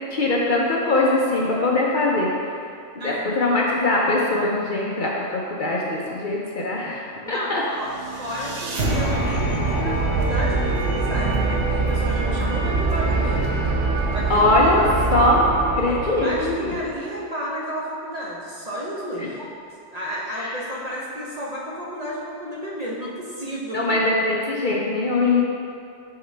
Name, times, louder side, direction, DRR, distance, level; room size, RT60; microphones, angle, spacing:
voice 1, 0.1-2.3 3.0-7.6 14.3-14.8 15.1-15.4 15.7-16.7 20.3-20.5 23.7-25.4, left 2 dB, 50° left, -3 dB, 0.7 m, -21 dB
voice 2, 7.2-13.4 14.1-14.9 15.8-19.4 19.9-23.8, equal, 40° right, -5 dB, 0.7 m, -32 dB
sound 1, 7.8-16.9, right 3 dB, 75° right, 1.1 m, -24 dB
5.8 x 5.4 x 3.3 m, 2.5 s
omnidirectional pair, 1.2 m